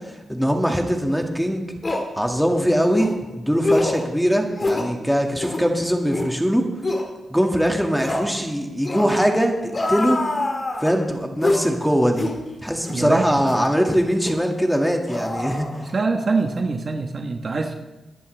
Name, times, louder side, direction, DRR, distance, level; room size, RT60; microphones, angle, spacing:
voice 1, 0.3-1.6 2.2-6.6 7.3-10.2 10.8-12.3 12.6-15.9, equal, ahead, 2 dB, 2.1 m, -21 dB
sound 1, 1.1-1.2 1.8-2.1 2.9-3.1 3.6-4.0 4.6-4.9 5.4-5.7 6.1-6.3 6.8-7.1 8.0-8.3 8.8-9.2 9.7-11.0 11.4-11.7 12.2-12.4 12.9-13.0 13.5-13.7 14.2-14.4 15.1-16.1 16.4-16.6, left 2 dB, 35° left, 2.2 m, -25 dB
voice 2, 12.9-13.3 15.8-17.8, right 3 dB, 50° right, 4 dB, 1.3 m, -24 dB
21.5 x 10.5 x 3.4 m, 1.1 s
cardioid pair, 75°, 0 cm